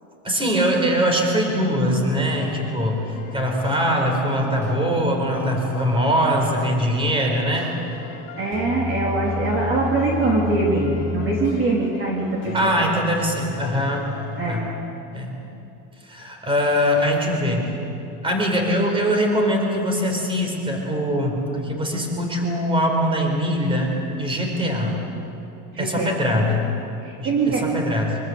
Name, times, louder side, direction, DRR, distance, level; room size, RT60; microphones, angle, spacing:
voice 1, 0.2-7.7 12.5-14.1 14.5-14.7 15.1-15.4 16.1-17.7 18.2-23.9 24.2-25.0 25.8-26.7 27.2-28.2, equal, 10° right, 2 dB, 4.6 m, -22 dB
sound 1, 2.2-14.5, left 5 dB, 40° left, 3.3 m, -34 dB
voice 2, 8.4-12.8 14.4-14.7 25.7-26.2 27.0-27.7, right 3 dB, 30° right, -2 dB, 3.6 m, -23 dB
25.0 x 24.5 x 8.0 m, 2.8 s
supercardioid pair, 150°, 43 cm